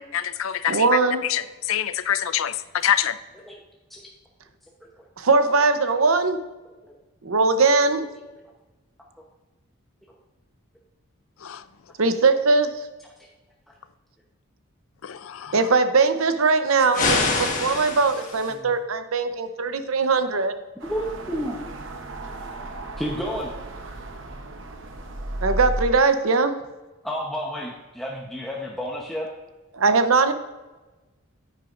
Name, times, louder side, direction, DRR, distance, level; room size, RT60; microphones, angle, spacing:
voice 1, 0.1-2.6 2.8-3.2 11.4-11.6 15.0-15.5, left 10 dB, 75° left, 14 dB, 0.5 m, -25 dB
voice 2, 0.7-1.2 5.2-6.4 7.2-8.0 12.0-12.7 15.5-20.5 25.4-26.5 29.7-30.3, right 4 dB, 85° right, 9 dB, 0.8 m, -20 dB
sound 1, 16.9-18.5, left 3 dB, 40° left, 1.3 m, -25 dB
voice 3, 20.8-21.6 23.0-23.5 27.0-29.3, equal, ahead, -3 dB, 0.9 m, -30 dB
sound 2, 20.8-25.9, right 1 dB, 65° right, 0.9 m, -34 dB
10.0 x 9.1 x 2.6 m, 1.2 s
head